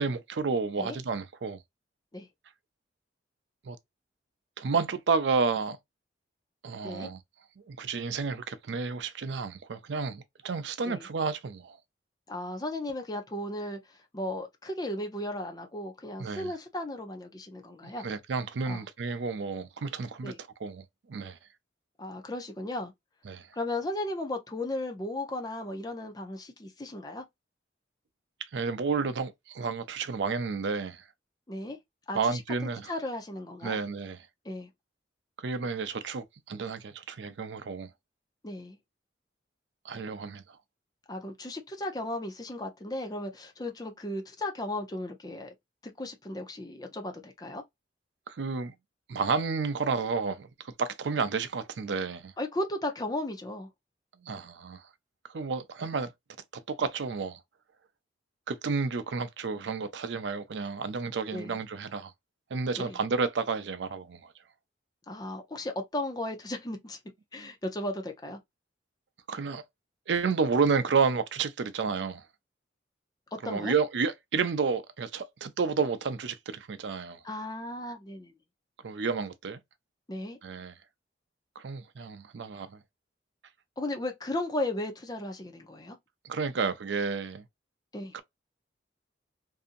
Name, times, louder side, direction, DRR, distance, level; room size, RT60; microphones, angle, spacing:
voice 1, 0.0-1.6 3.6-3.8 4.6-5.8 6.6-7.2 7.7-11.8 16.2-16.5 18.0-20.3 20.6-21.4 23.3-23.5 28.4-31.1 32.1-32.9 33.6-34.2 35.4-37.9 39.8-40.6 48.3-48.7 49.1-52.3 54.2-54.9 55.3-56.1 56.7-57.4 58.5-62.1 62.5-64.3 67.4-67.5 69.3-69.6 70.1-72.2 73.4-77.2 78.8-79.6 80.4-80.8 81.6-82.8 86.2-87.4 88.1-88.2, right 5 dB, 75° right, 0.5 m, -31 dB
voice 2, 12.3-18.0 18.6-18.8 20.2-20.4 22.0-22.9 23.5-27.2 31.5-31.8 32.1-32.4 32.9-33.8 34.4-34.7 38.4-38.8 41.1-45.5 45.8-47.6 52.4-53.7 61.3-61.6 62.8-63.0 65.1-67.0 67.3-68.4 73.4-73.7 77.2-78.3 80.1-80.4 83.8-86.0 87.9-88.2, left 1 dB, 20° left, 0.5 m, -35 dB
2.7 x 2.5 x 2.5 m
head